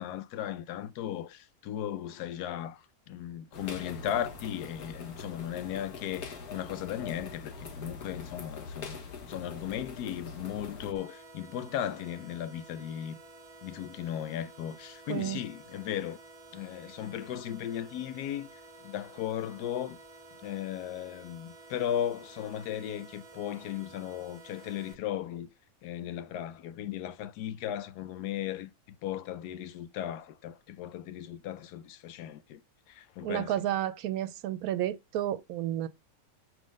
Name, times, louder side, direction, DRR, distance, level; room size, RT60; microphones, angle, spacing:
voice 1, 0.0-9.0 9.3-13.2 13.6-16.2 16.5-20.0 20.4-25.5 25.8-32.6 32.9-33.6, left 10 dB, 90° left, 1.2 m, -36 dB
sound 1, 3.5-10.9, left 4 dB, 70° left, 1.7 m, -43 dB
sound 2, 10.9-24.9, right 2 dB, 35° right, 0.6 m, -52 dB
voice 2, 33.2-35.9, right 12 dB, 75° right, 1.0 m, -31 dB
4.9 x 3.7 x 5.1 m
omnidirectional pair, 1.6 m